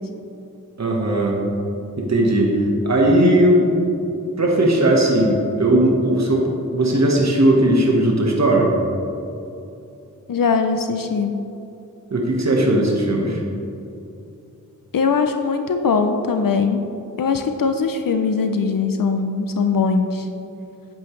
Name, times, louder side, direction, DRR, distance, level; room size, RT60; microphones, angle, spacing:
voice 1, 0.8-1.4 2.0-2.5 2.8-3.7 4.4-8.7 12.1-13.4, right 1 dB, 55° right, -1 dB, 1.4 m, -17 dB
voice 2, 10.3-11.3 14.9-16.8 17.2-20.3, left 5 dB, 80° left, 7 dB, 0.5 m, -20 dB
8.9 x 8.9 x 3.2 m, 2.8 s
wide cardioid pair, 45°, 33 cm